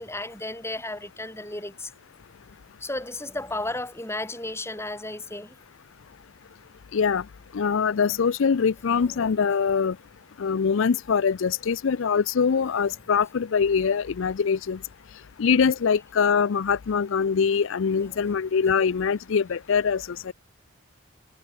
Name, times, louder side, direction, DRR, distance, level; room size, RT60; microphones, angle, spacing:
voice 1, 0.0-1.9 2.8-5.5 8.9-9.2 18.0-18.4, left 2 dB, 10° left, 5.7 m, -34 dB
voice 2, 6.9-7.2 7.5-9.9 10.4-14.8 15.4-20.3, left 6 dB, 60° left, 0.4 m, -23 dB
head